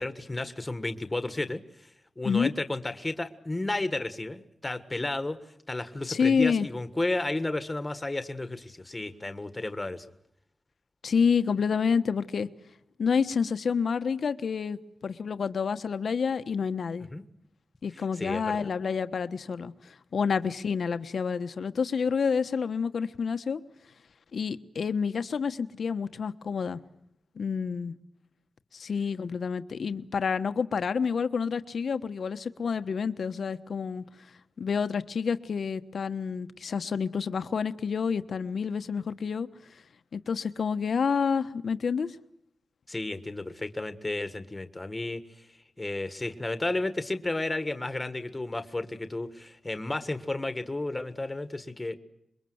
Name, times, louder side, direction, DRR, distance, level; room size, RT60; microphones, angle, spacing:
voice 1, 0.0-1.6 2.2-5.4 5.7-10.0 17.1-17.2 18.2-18.7 42.9-45.2 45.8-52.0, left 2 dB, 15° left, 10 dB, 1.6 m, -32 dB
voice 2, 6.1-6.7 11.0-12.5 13.0-17.1 17.8-23.6 24.3-26.8 27.4-27.9 28.7-34.0 34.6-39.5 40.1-42.2, left 6 dB, 60° left, 11 dB, 1.2 m, -28 dB
27.0 x 23.0 x 8.0 m, 0.78 s
wide cardioid pair, 160°, 0 cm